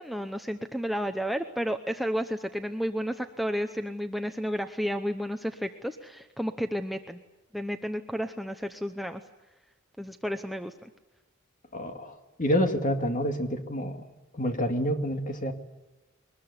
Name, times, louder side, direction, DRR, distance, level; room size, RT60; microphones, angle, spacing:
voice 1, 0.0-7.2 7.5-9.2 10.0-10.9, equal, ahead, 6 dB, 0.8 m, -32 dB
voice 2, 11.7-14.1 14.3-15.5, equal, 35° left, 5 dB, 2.3 m, -28 dB
22.5 x 20.5 x 9.7 m, 1.1 s
head